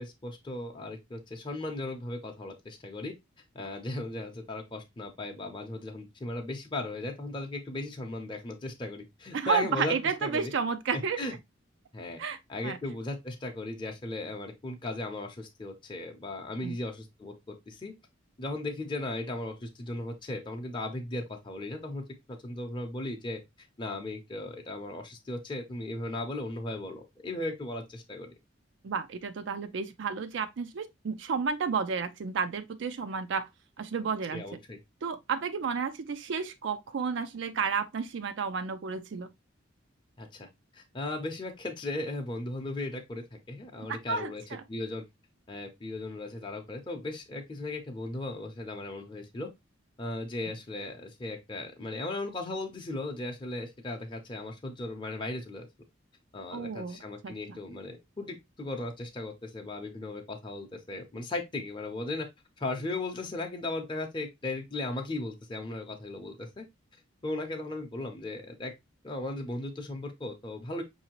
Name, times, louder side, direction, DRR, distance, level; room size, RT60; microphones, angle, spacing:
voice 1, 0.0-3.1 3.5-9.9 10.2-10.5 11.2-11.3 11.9-12.2 12.5-17.3 17.7-17.9 18.4-22.0 22.4-23.4 23.8-28.3 34.3-34.8 40.2-44.4 44.7-45.0 45.5-49.5 50.0-55.7 56.3-62.3 62.6-66.6 67.2-68.7 69.0-70.8, left 2 dB, 25° left, 0.7 m, -37 dB
voice 2, 9.3-11.2 12.2-12.8 16.6-16.8 28.8-33.5 33.8-34.6 35.0-39.3 43.9-44.6 56.5-57.6, right 6 dB, 65° right, 0.4 m, -32 dB
5.6 x 2.7 x 2.9 m
head